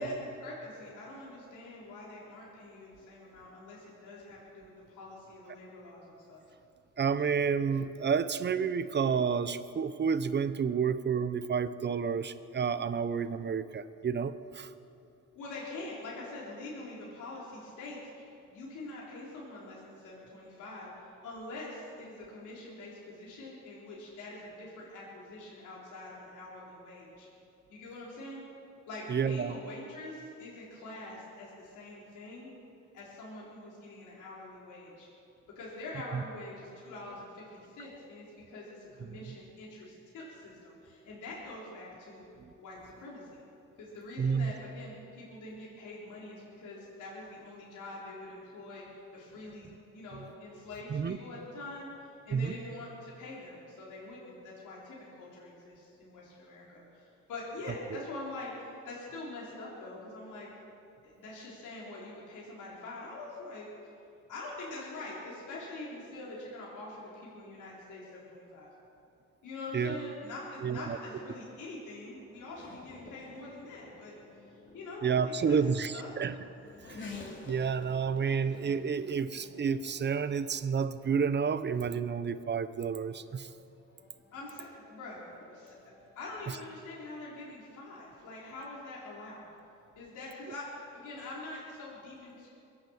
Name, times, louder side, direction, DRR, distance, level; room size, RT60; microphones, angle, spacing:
voice 1, 0.0-6.4 15.4-27.3 27.7-28.4 28.9-32.5 32.9-35.1 35.6-42.3 42.6-43.4 43.8-48.8 49.1-60.5 61.0-63.7 64.3-68.7 69.4-74.2 74.7-75.6 75.9-76.1 84.3-85.8 86.2-89.5 90.0-92.5, left 2 dB, 80° left, -6 dB, 4.0 m, -45 dB
voice 2, 7.0-14.7 29.1-29.6 36.1-36.2 44.2-44.5 50.9-51.2 52.3-52.5 57.9-58.0 69.7-70.1 70.6-71.0 75.0-76.3 76.9-77.0 77.4-83.5, right 6 dB, 35° right, 13 dB, 0.8 m, -30 dB
Race car auto racing / Accelerating revving vroom, 71.6-86.8, left 3 dB, 40° left, 3.1 m, -52 dB
22.5 x 8.8 x 7.2 m, 2.7 s
cardioid pair, 90°, 30 cm